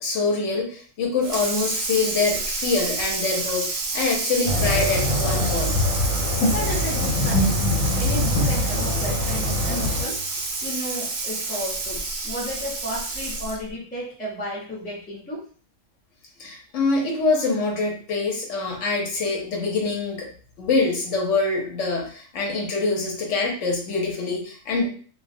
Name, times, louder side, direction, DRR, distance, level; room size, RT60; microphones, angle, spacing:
voice 1, 0.0-5.8 16.4-20.3 20.6-24.9, left 3 dB, 65° left, -1 dB, 0.9 m, -25 dB
Water tap faucet / Sink (filling or washing), 1.2-13.7, right 3 dB, 65° right, 0.7 m, -29 dB
sound 1, 4.5-10.0, left 1 dB, 90° left, 1.1 m, -23 dB
voice 2, 6.5-7.5 7.9-10.2 10.6-15.4, equal, 10° left, -6 dB, 0.5 m, -33 dB
2.3 x 2.0 x 2.5 m, 0.43 s
omnidirectional pair, 1.4 m